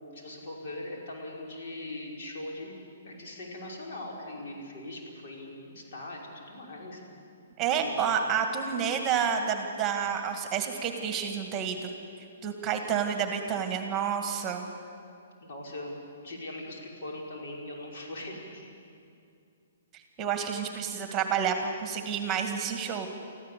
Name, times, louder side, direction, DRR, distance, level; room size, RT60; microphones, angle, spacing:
voice 1, 0.1-2.8 3.0-7.0 7.7-8.1 15.4-16.0 16.2-18.7, left 1 dB, 60° left, -2 dB, 5.6 m, -41 dB
voice 2, 7.6-11.9 12.4-14.7 19.9-23.1, right 7 dB, 25° right, 5 dB, 2.0 m, -29 dB
25.0 x 14.5 x 8.5 m, 2.5 s
hypercardioid pair, 140°, 0 cm